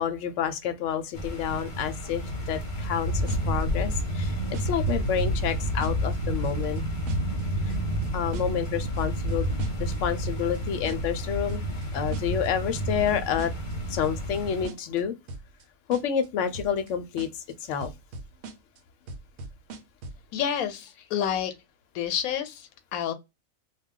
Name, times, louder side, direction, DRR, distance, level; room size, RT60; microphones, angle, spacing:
voice 1, 0.0-2.2 2.5-4.3 4.6-6.8 7.7-7.8 8.1-9.5 9.8-11.6 11.9-13.5 13.9-15.1 15.9-17.3 17.7-17.9, left 8 dB, 70° left, 0.8 m, -29 dB
sound 1, 1.1-14.7, equal, 45° left, 0.8 m, -30 dB
sound 2, 3.3-3.6 3.9-4.9 5.2-5.5 5.8-6.2 6.4-6.8 7.1-7.4 7.7-8.7 9.0-10.6 10.9-11.2 11.5-11.9 12.1-12.5 12.8-13.1 13.4-13.7 14.0-15.0 15.3-15.6 15.9-16.3 16.5-16.9 17.2-17.5 17.8-18.8 19.1-20.2, right 2 dB, 75° right, 1.0 m, -40 dB
voice 2, 20.3-21.6 21.9-23.1, left 9 dB, 90° left, 1.0 m, -29 dB
2.3 x 2.3 x 3.6 m
omnidirectional pair, 1.5 m